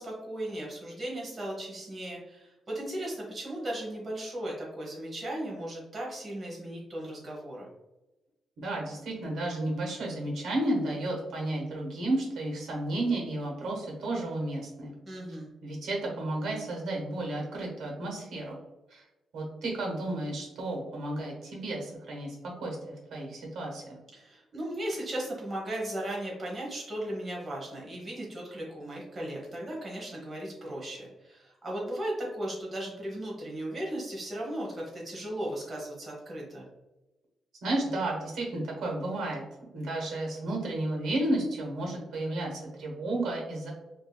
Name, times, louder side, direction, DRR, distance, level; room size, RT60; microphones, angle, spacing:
voice 1, 0.0-7.7 15.1-15.5 24.1-36.7, right 1 dB, 30° right, -4 dB, 1.1 m, -36 dB
voice 2, 8.6-14.9 15.6-18.6 18.9-19.0 19.3-22.3 22.6-24.0 37.6-39.4 39.7-43.7, right 1 dB, 75° right, -1 dB, 1.3 m, -32 dB
4.8 x 2.7 x 2.2 m, 1.0 s
cardioid pair, 150°, 0 cm